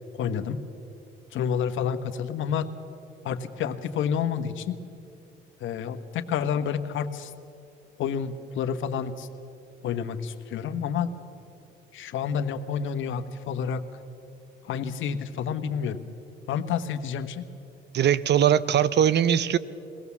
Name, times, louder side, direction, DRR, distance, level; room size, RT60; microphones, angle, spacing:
voice 1, 0.1-0.6 1.3-2.7 3.2-4.8 5.6-7.3 8.0-9.3 9.8-11.1 11.9-13.8 14.6-16.0 16.5-17.5, left 7 dB, 80° left, 9 dB, 1.2 m, -29 dB
voice 2, 17.9-19.6, right 9 dB, 60° right, 17 dB, 0.8 m, -21 dB
22.5 x 17.5 x 7.2 m, 2.6 s
cardioid pair, 90°, 20 cm